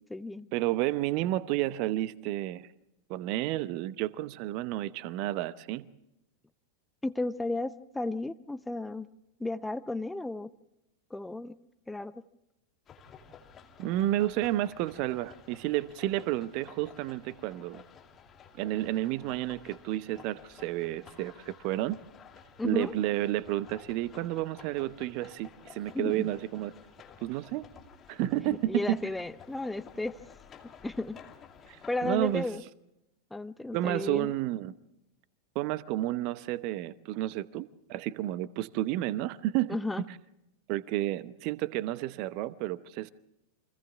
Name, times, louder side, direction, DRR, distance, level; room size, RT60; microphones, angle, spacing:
voice 1, 0.0-0.5 7.0-9.1 9.4-10.5 11.1-11.5 11.9-12.2 22.6-22.9 25.9-26.3 28.5-30.2 30.8-31.2 31.9-32.6 33.3-34.3 39.7-40.0, left 2 dB, 5° left, 0.7 m, -33 dB
voice 2, 0.5-2.7 3.1-5.9 13.8-17.8 18.6-22.0 22.6-26.8 27.2-27.7 28.1-29.0 31.7-32.5 33.7-34.7 35.5-39.8 40.7-43.1, right 15 dB, 45° right, 0.8 m, -31 dB
sound 1, 12.9-32.5, left 6 dB, 25° left, 2.4 m, -53 dB
30.0 x 24.5 x 3.6 m
figure-of-eight pair, 90°, 0 cm